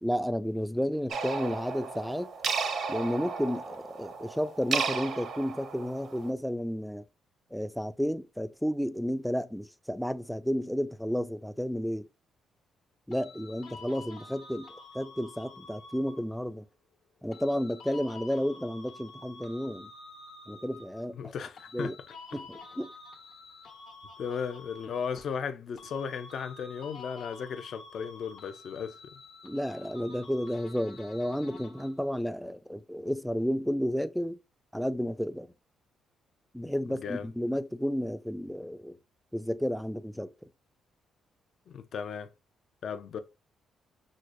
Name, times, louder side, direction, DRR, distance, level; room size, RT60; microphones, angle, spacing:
voice 1, 0.0-2.3 2.9-7.0 7.5-12.1 13.1-16.6 17.2-19.9 20.5-21.3 21.7-21.9 22.3-22.9 29.4-34.4 34.7-35.5 36.5-39.0 39.3-40.5, equal, ahead, 0.4 m, -32 dB
sound 1, 1.1-6.3, right 5 dB, 60° right, 0.6 m, -34 dB
sound 2, 13.1-16.5 17.3-21.1 21.6-25.5 25.8-32.1, left 3 dB, 75° left, 1.3 m, -49 dB
voice 2, 21.2-21.9 24.2-29.2 36.9-37.3 41.7-42.3 42.8-43.2, left 6 dB, 55° left, 0.5 m, -36 dB
6.3 x 2.1 x 2.5 m
cardioid pair, 110°, 0 cm